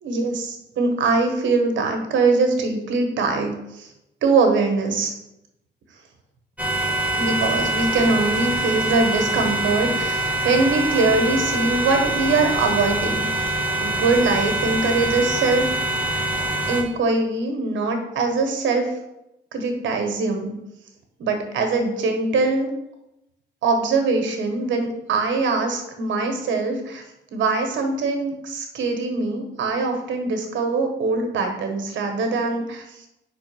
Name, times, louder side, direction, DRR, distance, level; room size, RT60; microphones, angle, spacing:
voice 1, 0.0-3.9 4.2-5.1 7.1-13.2 13.8-15.7 16.7-18.9 19.5-20.5 21.2-22.7 23.6-27.0 27.3-32.8, right 3 dB, 70° right, 4 dB, 1.5 m, -22 dB
sound 1, 6.6-16.8, right 1 dB, 5° right, 1.4 m, -24 dB
5.4 x 4.2 x 6.0 m, 0.88 s
cardioid pair, 90°, 20 cm